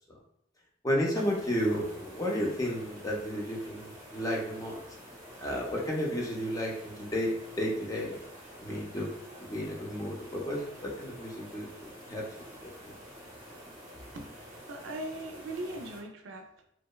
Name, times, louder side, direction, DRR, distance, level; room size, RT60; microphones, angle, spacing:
voice 1, 0.8-4.8 5.4-8.2 8.6-9.1 9.5-12.2 12.8-12.9, equal, 20° left, -2 dB, 0.4 m, -32 dB
sound 1, 1.1-16.0, equal, 25° right, 0.9 m, -49 dB
voice 2, 14.1-16.6, right 1 dB, 75° right, 3 dB, 0.4 m, -40 dB
2.8 x 2.0 x 2.2 m, 0.72 s
head